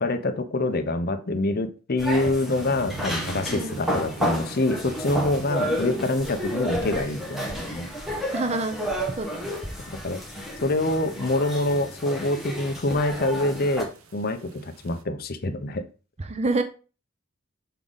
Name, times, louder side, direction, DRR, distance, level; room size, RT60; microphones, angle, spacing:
voice 1, 0.0-7.9 10.0-10.2 10.6-15.8, left 2 dB, 45° left, 8 dB, 0.7 m, -26 dB
sound 1, 2.0-13.8, equal, ahead, 1.3 m, -31 dB
sound 2, 2.6-15.0, right 3 dB, 85° right, 0.8 m, -47 dB
voice 2, 3.5-3.8 5.7-6.0 8.3-8.8 9.1-9.5 16.2-16.6, right 2 dB, 30° right, 7 dB, 0.6 m, -28 dB
6.8 x 3.6 x 3.9 m, 0.35 s
head